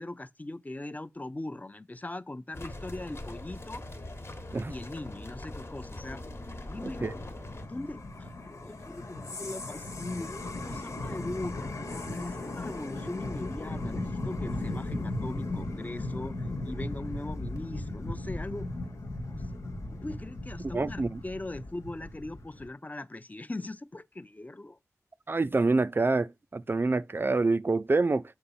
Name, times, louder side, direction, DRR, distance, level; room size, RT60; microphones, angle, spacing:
voice 1, 0.0-3.8 4.7-6.2 6.7-7.0 7.6-18.7 19.3-24.8, left 2 dB, 30° left, 0.6 m, -40 dB
sound 1, 2.5-7.7, left 1 dB, 50° left, 1.2 m, -41 dB
sound 2, 6.2-22.7, left 2 dB, 70° left, 1.4 m, -37 dB
voice 2, 20.7-21.2 25.3-28.2, right 3 dB, 40° right, 0.3 m, -26 dB
6.6 x 2.9 x 5.6 m
cardioid pair, 45°, 6 cm